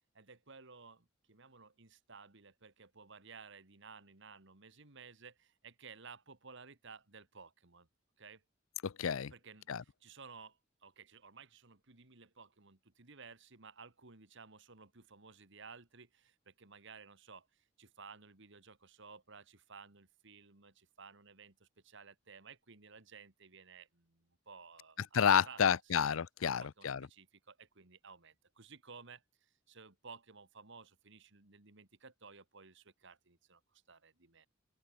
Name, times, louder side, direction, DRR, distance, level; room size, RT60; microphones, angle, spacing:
voice 1, 0.1-7.9 8.2-8.4 9.3-25.6 25.9-26.0 26.4-34.5, right 5 dB, 65° right, 2.4 m, -56 dB
voice 2, 8.8-9.3 9.7-9.8 25.1-27.0, left 7 dB, 85° left, 0.5 m, -30 dB
open air
head